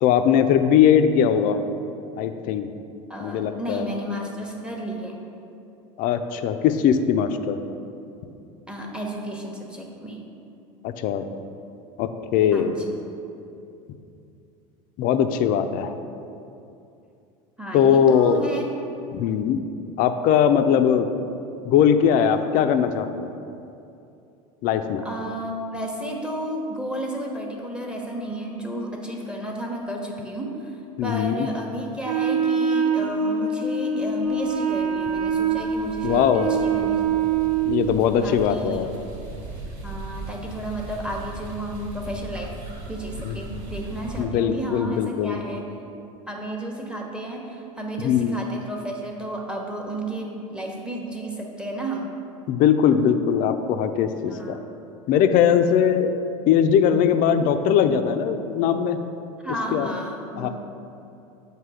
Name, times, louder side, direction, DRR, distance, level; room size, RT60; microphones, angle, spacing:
voice 1, 0.0-1.6 2.2-2.7 3.2-3.9 6.0-7.6 10.8-11.2 12.0-12.8 15.0-15.9 17.7-18.4 19.1-19.6 20.0-21.1 21.6-23.3 24.6-25.0 31.0-31.5 36.0-36.5 37.7-38.9 43.2-43.3 44.2-45.4 48.0-48.4 52.5-54.6 55.1-56.2 56.5-59.0 59.7-59.9 60.4-60.5, left 8 dB, 50° left, 9 dB, 0.4 m, -20 dB
voice 2, 3.1-5.2 8.7-10.2 12.5-12.8 17.6-18.7 25.0-37.4 38.2-38.8 39.8-42.5 42.9-45.7 46.3-52.1 54.3-54.7 59.4-60.5, right 1 dB, 5° right, 0 dB, 0.9 m, -32 dB
Wind instrument woodwind instrument, 32.0-37.9, right 6 dB, 40° right, 0.6 m, -24 dB
sound 1, 34.1-44.2, right 2 dB, 60° right, 1.1 m, -39 dB
7.5 x 2.7 x 4.8 m, 2.7 s
hypercardioid pair, 90°, 18 cm